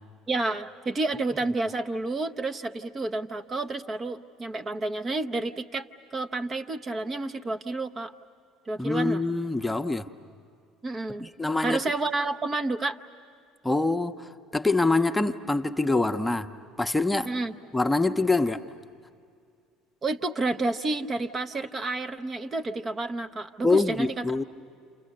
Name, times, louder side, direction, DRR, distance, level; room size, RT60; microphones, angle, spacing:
voice 1, 0.3-8.1 8.7-9.2 10.8-11.3 11.6-13.0 17.3-17.5 20.0-24.2, right 2 dB, 30° right, 8 dB, 0.8 m, -30 dB
voice 2, 8.8-10.1 11.2-11.8 13.6-16.5 16.8-17.3 17.7-18.6 23.6-24.4, left 3 dB, 10° left, 7 dB, 0.8 m, -25 dB
29.0 x 29.0 x 6.6 m, 2.3 s
figure-of-eight pair, 60°, 0 cm